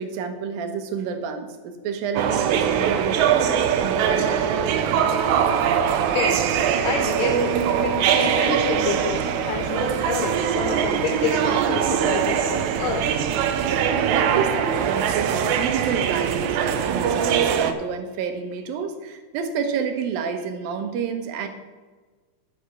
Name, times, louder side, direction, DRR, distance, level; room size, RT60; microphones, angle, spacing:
voice 1, 0.0-5.1 14.1-21.5, right 6 dB, 90° right, 7 dB, 2.8 m, -29 dB
sound 1, 2.2-17.7, right 8 dB, 75° right, 1.8 m, -22 dB
voice 2, 6.1-13.1, left 6 dB, 75° left, 4 dB, 2.3 m, -29 dB
9.7 x 6.3 x 7.0 m, 1.4 s
omnidirectional pair, 4.0 m